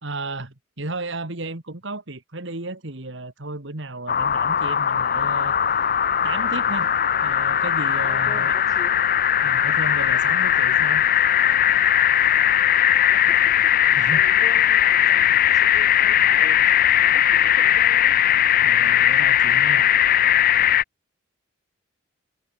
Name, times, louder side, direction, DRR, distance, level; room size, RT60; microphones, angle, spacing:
voice 1, 0.0-5.6 6.2-6.9 7.2-8.5 9.4-11.0 14.0-14.3 18.6-19.9, right 2 dB, 65° right, 2.2 m, -33 dB
sound 1, 4.1-20.8, left 10 dB, 45° left, 0.6 m, -19 dB
voice 2, 8.0-9.2 13.1-18.2, left 1 dB, 20° left, 3.8 m, -44 dB
head